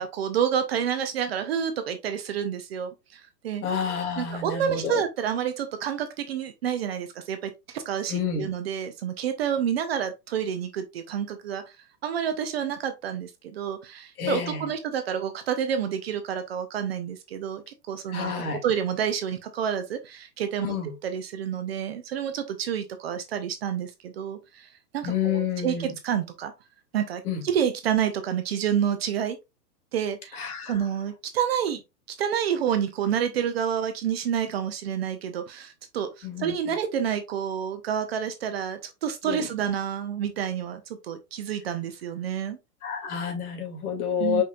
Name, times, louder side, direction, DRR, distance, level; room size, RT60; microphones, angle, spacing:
voice 1, 0.0-3.6 4.2-11.6 12.0-20.7 21.0-26.5 26.9-29.4 29.9-30.4 30.7-31.8 32.2-42.6 44.2-44.4, right 8 dB, 40° right, 0.6 m, -29 dB
voice 2, 3.6-5.0 8.1-8.5 14.2-14.7 18.1-18.6 20.6-20.9 25.0-25.9 27.3-27.4 30.3-30.8 36.2-36.5 39.2-39.5 42.8-44.4, left 7 dB, 60° left, 2.2 m, -29 dB
5.2 x 4.1 x 2.3 m
hypercardioid pair, 160°, 50 cm